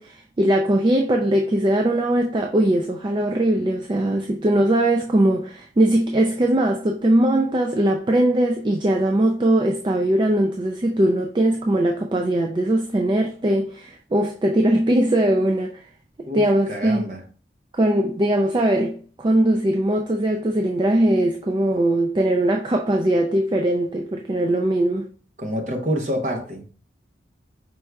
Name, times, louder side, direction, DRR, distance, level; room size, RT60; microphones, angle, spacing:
voice 1, 0.0-15.8 16.3-17.0 17.7-25.1, right 1 dB, 25° right, 0.3 m, -20 dB
voice 2, 16.2-17.2 25.4-26.7, equal, 40° right, 0.8 m, -27 dB
5.2 x 4.5 x 2.3 m
head